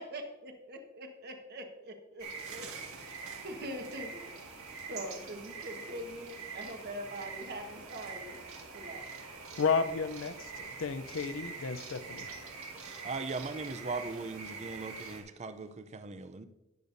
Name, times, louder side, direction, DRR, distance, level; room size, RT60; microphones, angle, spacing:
voice 1, 0.0-2.7 3.0-4.2 4.9-8.4 8.7-9.1, equal, 50° right, 1.4 m, -43 dB
sound 1, 2.2-15.2, right 4 dB, 90° right, 1.9 m, -45 dB
voice 2, 9.6-12.3, left 5 dB, 65° left, 0.6 m, -32 dB
voice 3, 13.0-16.5, right 3 dB, 30° right, 0.5 m, -39 dB
19.0 x 6.8 x 2.7 m
head